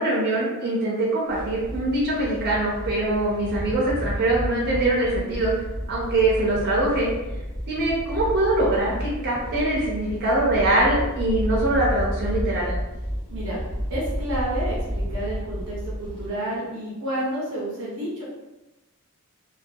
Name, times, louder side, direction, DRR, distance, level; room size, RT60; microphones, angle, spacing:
voice 1, 0.0-5.5 5.9-7.1 7.7-12.7, right 2 dB, 50° right, -5 dB, 0.5 m, -23 dB
sound 1, 1.3-16.3, equal, 20° left, 0.8 m, -31 dB
voice 2, 13.9-18.2, right 1 dB, 85° right, -5 dB, 0.6 m, -30 dB
2.3 x 2.2 x 2.6 m, 1.0 s
head